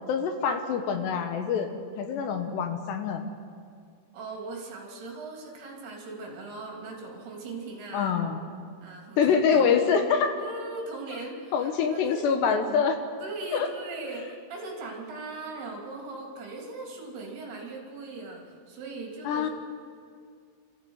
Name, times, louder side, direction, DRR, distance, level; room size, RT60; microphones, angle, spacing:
voice 1, 0.1-1.7 2.0-3.2 7.9-8.4 9.2-10.4 11.5-13.0 13.5-13.7 19.2-19.5, left 6 dB, 70° left, 6 dB, 2.9 m, -25 dB
voice 2, 4.1-8.1 8.8-9.2 9.5-9.7 10.4-12.3 13.2-19.5, right 3 dB, 55° right, -1 dB, 4.7 m, -39 dB
26.5 x 14.5 x 8.1 m, 2.2 s
omnidirectional pair, 5.7 m